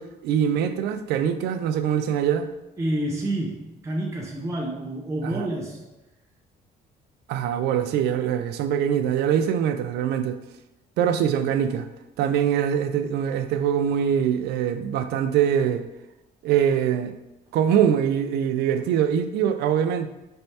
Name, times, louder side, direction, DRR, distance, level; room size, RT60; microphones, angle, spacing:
voice 1, 0.0-2.5 5.2-5.5 7.3-10.4 11.0-11.9 12.2-15.8 16.4-17.1 17.5-20.1, right 9 dB, 75° right, 8 dB, 0.4 m, -23 dB
voice 2, 2.8-5.9, right 1 dB, 15° right, -2 dB, 0.5 m, -29 dB
4.3 x 3.2 x 2.8 m, 0.94 s
cardioid pair, 110°, 17 cm